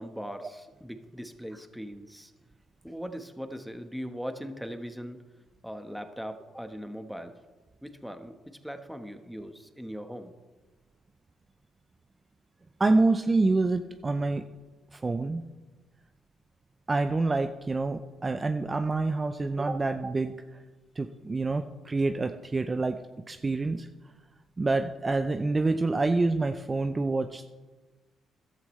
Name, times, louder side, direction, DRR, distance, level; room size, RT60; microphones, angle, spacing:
voice 1, 0.0-2.3 2.8-5.2 5.6-7.3 7.8-10.3 19.7-19.8, equal, ahead, 7 dB, 1.1 m, -40 dB
voice 2, 12.8-14.4 14.9-15.4 16.9-20.6 21.0-23.0 23.3-23.9 24.6-27.4, right 3 dB, 25° right, 8 dB, 0.5 m, -27 dB
14.0 x 12.0 x 3.2 m, 1.3 s
cardioid pair, 90°, 0 cm